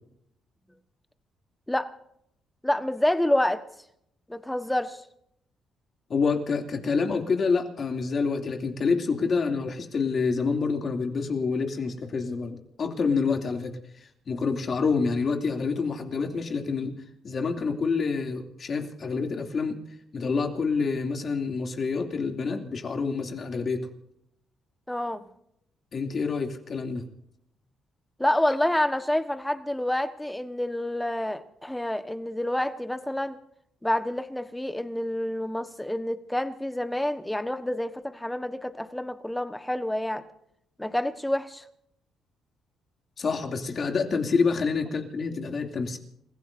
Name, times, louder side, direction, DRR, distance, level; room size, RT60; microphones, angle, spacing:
voice 1, 2.6-3.6 4.3-5.0 24.9-25.2 28.2-33.4 33.8-40.2 40.8-41.6, left 1 dB, 5° left, 10 dB, 1.3 m, -28 dB
voice 2, 6.1-16.9 17.2-19.8 20.1-23.9 25.9-27.0 43.2-46.0, left 4 dB, 45° left, 4 dB, 2.7 m, -27 dB
29.5 x 16.0 x 2.7 m, 0.74 s
cardioid pair, 90°, 0 cm